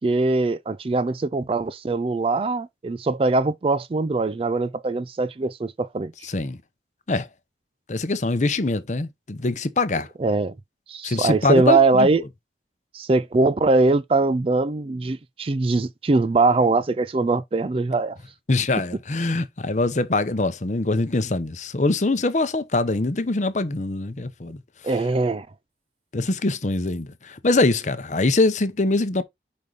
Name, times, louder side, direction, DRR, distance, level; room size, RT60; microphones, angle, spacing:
voice 1, 0.0-6.1 10.2-10.5 10.9-12.2 12.9-18.2 24.8-25.5, right 3 dB, 30° right, 0.4 m, -21 dB
voice 2, 6.2-6.6 7.1-7.3 7.9-10.1 11.0-12.1 18.5-24.6 26.1-29.2, left 2 dB, 40° left, 0.7 m, -23 dB
5.3 x 4.8 x 3.9 m
head